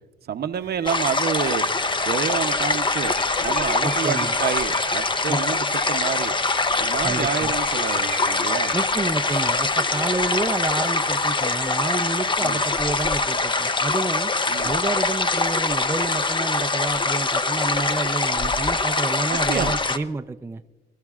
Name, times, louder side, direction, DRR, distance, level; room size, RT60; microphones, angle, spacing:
voice 1, 0.3-1.7 2.1-3.1 3.4-6.3 6.8-8.7 12.4-12.6 14.5-14.7 19.3-19.7, right 8 dB, 55° right, 10 dB, 0.7 m, -28 dB
sound 1, 0.5-13.0, equal, 80° left, 5.0 m, -39 dB
sound 2, 0.9-20.0, left 3 dB, 25° left, 0.7 m, -23 dB
voice 2, 3.8-4.4 5.3-5.4 7.0-7.5 8.7-14.3 14.6-20.6, right 3 dB, 10° right, 7 dB, 0.5 m, -29 dB
25.5 x 12.5 x 2.4 m, 1.2 s
cardioid pair, 90°, 20 cm